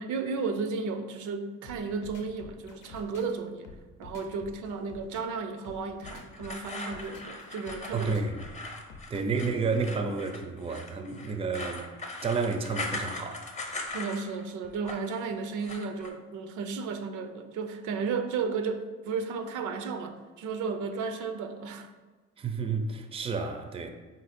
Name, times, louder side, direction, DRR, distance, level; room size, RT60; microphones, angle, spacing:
voice 1, 0.0-3.7 4.0-8.1 13.9-21.9, right 5 dB, 75° right, 8 dB, 0.5 m, -34 dB
sound 1, 1.6-9.4, left 4 dB, 85° left, 0.6 m, -48 dB
sound 2, 6.0-14.4 14.7-15.2 15.6-16.1, left 2 dB, 25° left, 0.7 m, -40 dB
voice 2, 7.9-8.4 9.1-11.9 12.2-13.5 22.4-23.9, right 4 dB, 20° right, 6 dB, 0.4 m, -30 dB
4.0 x 2.6 x 4.1 m, 1.3 s
cardioid pair, 90°, 30 cm